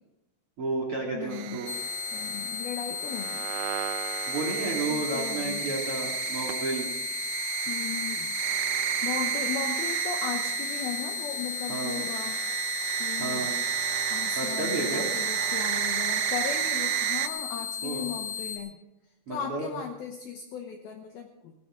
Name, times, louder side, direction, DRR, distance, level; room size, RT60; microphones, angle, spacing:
voice 1, 0.6-1.7 4.3-6.9 11.7-12.0 13.2-13.6 14.4-15.1 17.8-18.1 19.3-19.7, right 3 dB, 40° right, -1 dB, 2.2 m, -32 dB
voice 2, 1.1-1.6 2.1-3.5 4.9-5.7 7.7-8.3 9.0-12.4 13.0-13.5 14.1-18.8 19.3-21.5, left 8 dB, 85° left, 4 dB, 2.2 m, -37 dB
sound 1, 1.3-17.3, right 13 dB, 90° right, 2.3 m, -32 dB
sound 2, 1.7-18.6, left 7 dB, 55° left, 3.3 m, -35 dB
17.5 x 13.0 x 5.0 m, 0.98 s
omnidirectional pair, 5.7 m